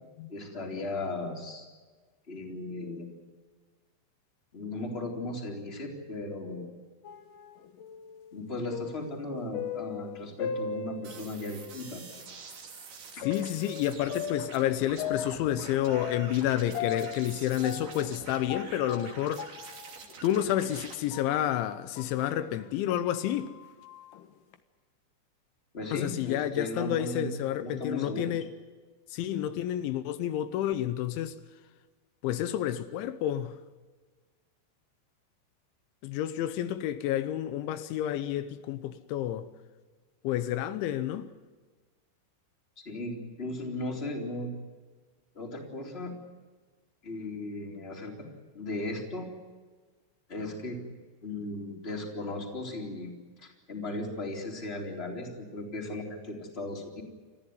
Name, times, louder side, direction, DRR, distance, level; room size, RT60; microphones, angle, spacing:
voice 1, 0.3-1.7 2.3-3.1 4.5-6.8 8.3-12.0 25.7-27.3 27.6-28.3 42.9-44.5 45.4-46.2 47.0-48.3 48.5-49.3 50.3-50.8 51.2-53.1 53.4-57.0, left 2 dB, 15° left, 3.5 m, -36 dB
sound 1, 7.0-11.7 12.1-12.2 13.2-22.3 22.7-24.5, left 8 dB, 70° left, 2.1 m, -39 dB
sound 2, 11.0-20.9, right 5 dB, 60° right, 4.8 m, -46 dB
voice 2, 13.2-19.5 20.2-23.5 25.9-28.5 29.1-31.3 32.2-33.6 36.0-39.5 40.2-41.3, left 12 dB, 85° left, 3.3 m, -30 dB
30.0 x 14.5 x 9.7 m
omnidirectional pair, 5.3 m